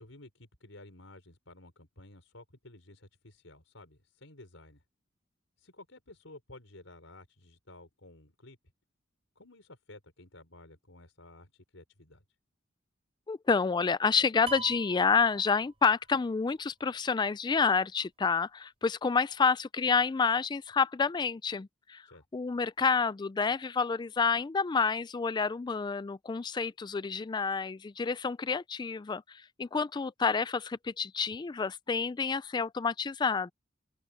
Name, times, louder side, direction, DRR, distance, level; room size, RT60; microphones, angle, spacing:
voice 1, 0.0-4.8 5.6-8.6 9.4-12.2 22.1-22.2, left 2 dB, 85° left, 5.3 m, -53 dB
voice 2, 13.3-22.0 22.3-33.5, left 5 dB, 20° left, 0.3 m, -29 dB
sound 1, 14.5-16.2, right 5 dB, 30° right, 3.3 m, -44 dB
open air
head